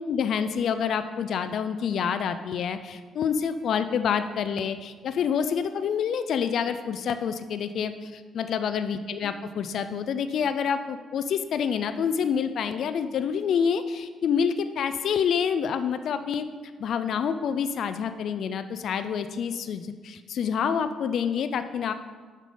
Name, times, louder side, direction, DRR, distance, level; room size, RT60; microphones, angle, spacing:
voice 1, 0.1-16.5 16.8-21.9, left 7 dB, 60° left, 10 dB, 0.4 m, -27 dB
7.3 x 5.3 x 5.1 m, 1.5 s
cardioid pair, 120°, 0 cm